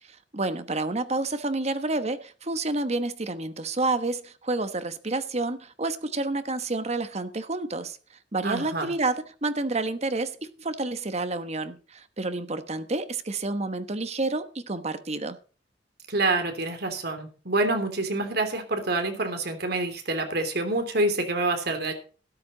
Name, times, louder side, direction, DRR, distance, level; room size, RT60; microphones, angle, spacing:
voice 1, 0.1-8.0 8.3-15.4, right 2 dB, 35° right, 1.2 m, -29 dB
voice 2, 8.4-8.9 16.1-21.9, right 2 dB, 60° right, 3.2 m, -27 dB
13.0 x 12.0 x 4.0 m
head